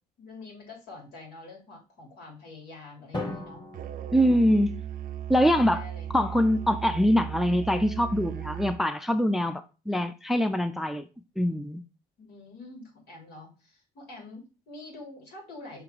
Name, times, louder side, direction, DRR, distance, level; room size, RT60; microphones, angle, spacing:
voice 1, 0.2-3.6 5.6-6.1 12.2-15.8, left 2 dB, 80° left, 3.3 m, -46 dB
Drum, 3.1-5.2, left 2 dB, 25° left, 2.2 m, -39 dB
Musical instrument, 3.7-8.9, right 10 dB, 55° right, 0.5 m, -37 dB
voice 2, 4.1-4.7 5.3-5.8 6.1-11.1 11.4-11.8, equal, ahead, 0.4 m, -24 dB
5.8 x 3.8 x 4.7 m
cardioid pair, 110°, 17 cm